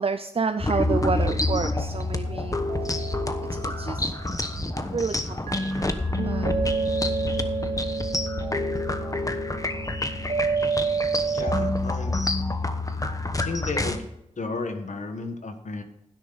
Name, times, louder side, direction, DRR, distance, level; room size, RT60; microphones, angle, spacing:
voice 1, 0.0-2.6 3.5-4.1 4.8-5.7 6.2-6.6 7.3-7.5, right 5 dB, 50° right, 8 dB, 0.5 m, -29 dB
sound 1, 0.6-14.0, left 2 dB, 30° left, 1.1 m, -28 dB
sound 2, 2.2-5.0 5.5-11.7, right 5 dB, 85° right, 1.3 m, -30 dB
voice 2, 11.3-12.2 13.4-14.1 14.4-15.8, left 3 dB, 90° left, 7 dB, 1.4 m, -33 dB
12.5 x 10.0 x 4.1 m, 0.86 s
wide cardioid pair, 65°, 12 cm